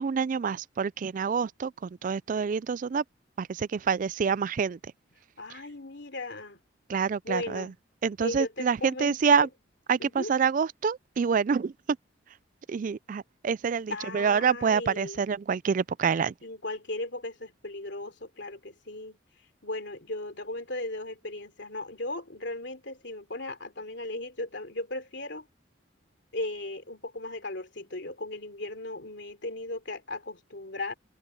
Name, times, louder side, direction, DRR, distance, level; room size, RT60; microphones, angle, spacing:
voice 1, 0.0-3.0 3.4-4.8 6.9-7.7 8.0-9.5 9.9-11.7 12.7-16.3, right 6 dB, 45° right, 0.3 m, -27 dB
voice 2, 5.4-6.6 7.2-7.8 8.2-9.5 10.0-10.3 13.9-15.2 16.4-19.2 19.6-25.5 26.3-30.9, left 2 dB, 65° left, 3.3 m, -37 dB
open air
head